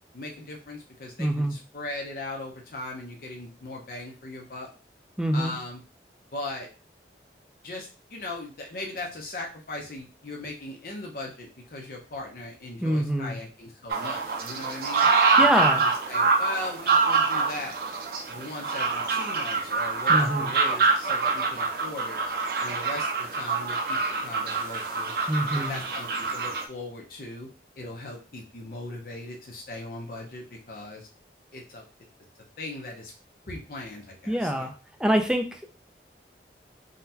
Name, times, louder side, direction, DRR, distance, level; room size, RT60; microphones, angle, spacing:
voice 1, 0.1-4.7 5.3-5.8 6.3-6.7 7.6-15.1 15.4-17.7 18.3-22.2 22.6-25.1 25.5-27.5 27.8-31.1 31.5-31.8 32.6-33.1 33.5-34.7, left 2 dB, 50° left, 0 dB, 0.6 m, -38 dB
voice 2, 1.2-1.5 5.2-5.5 12.8-13.4 15.4-15.8 20.1-20.5 25.3-25.8 34.3-34.7 35.0-35.7, equal, 5° right, 5 dB, 0.3 m, -25 dB
sound 1, 13.9-26.6, right 4 dB, 55° right, 0.5 m, -25 dB
3.7 x 2.1 x 2.7 m, 0.34 s
head